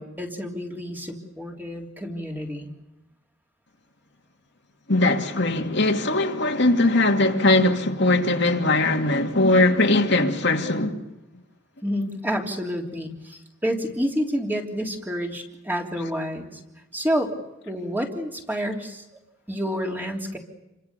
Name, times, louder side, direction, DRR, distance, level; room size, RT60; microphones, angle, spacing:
voice 1, 0.0-2.7 11.8-16.6 16.9-17.4 17.6-19.0 19.5-20.4, equal, 10° right, 3.3 m, -29 dB
voice 2, 4.9-11.0, left 2 dB, 55° left, 2.5 m, -20 dB
29.5 x 25.0 x 6.9 m
head